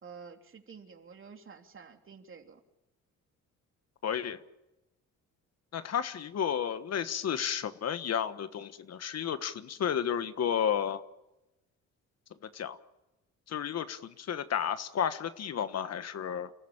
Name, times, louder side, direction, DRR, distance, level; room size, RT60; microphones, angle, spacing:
voice 1, 0.0-2.6, right 5 dB, 45° right, 4 dB, 3.3 m, -50 dB
voice 2, 4.0-4.4 5.7-11.0 12.5-12.8 13.5-16.5, left 8 dB, 55° left, 12 dB, 1.4 m, -32 dB
29.5 x 14.5 x 8.8 m, 0.98 s
cardioid pair, 90°, 30 cm